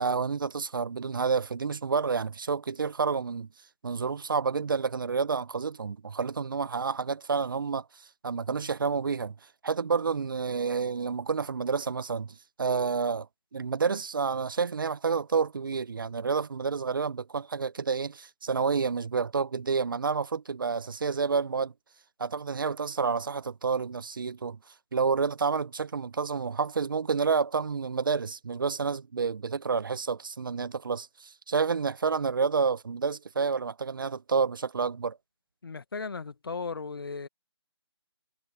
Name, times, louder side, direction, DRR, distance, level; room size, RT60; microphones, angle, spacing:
voice 1, 0.0-3.5 3.8-7.8 8.2-9.4 9.6-13.3 13.5-21.7 22.2-24.6 24.9-35.2, right 5 dB, 50° right, 1.4 m, -29 dB
voice 2, 35.6-37.3, left 4 dB, 55° left, 1.8 m, -36 dB
figure-of-eight pair, 150°, 14 cm